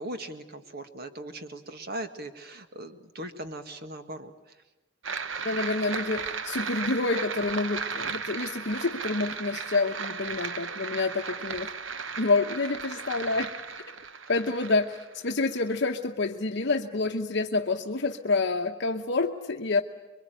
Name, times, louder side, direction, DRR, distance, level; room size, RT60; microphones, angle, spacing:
voice 1, 0.0-4.3, right 1 dB, 50° right, 8 dB, 1.8 m, -39 dB
sound 1, 5.0-16.0, right 5 dB, 70° right, 1.0 m, -35 dB
voice 2, 5.4-11.7 12.2-13.5 14.3-15.0 15.2-19.8, left 3 dB, 60° left, 4 dB, 0.9 m, -28 dB
26.0 x 23.0 x 9.2 m, 1.1 s
head